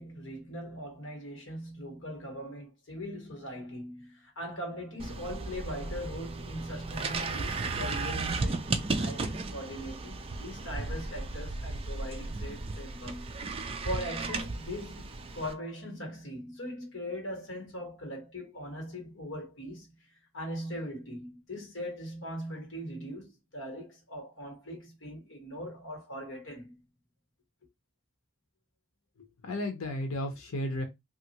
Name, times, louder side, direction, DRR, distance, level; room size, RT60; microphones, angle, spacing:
voice 1, 0.0-13.3 13.8-26.7, equal, 60° left, 1.4 m, -40 dB
sound 1, 5.0-15.5, right 3 dB, 25° right, 0.3 m, -35 dB
voice 2, 29.2-30.8, left 1 dB, 90° left, 0.7 m, -34 dB
3.1 x 2.5 x 2.9 m
head